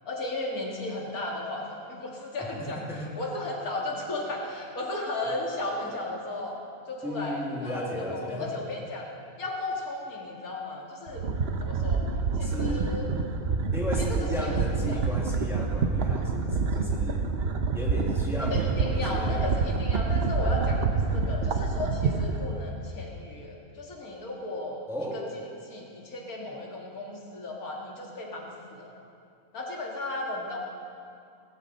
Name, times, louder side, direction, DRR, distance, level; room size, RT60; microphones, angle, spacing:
voice 1, 0.1-2.8 3.2-6.6 6.9-9.1 9.4-11.3 11.6-12.0 12.3-13.1 14.0-15.0 18.4-24.8 25.1-25.2 25.6-28.9 29.5-30.6, left 2 dB, 75° left, -2 dB, 2.4 m, -35 dB
voice 2, 2.4-3.1 5.8-5.9 7.0-8.5 12.4-12.8 13.7-17.2 17.7-19.7 24.9-25.2, left 1 dB, ahead, -3 dB, 2.1 m, -35 dB
sound 1, 11.1-22.6, right 4 dB, 50° right, 0.9 m, -27 dB
18.5 x 13.5 x 4.1 m, 2.4 s
omnidirectional pair, 1.5 m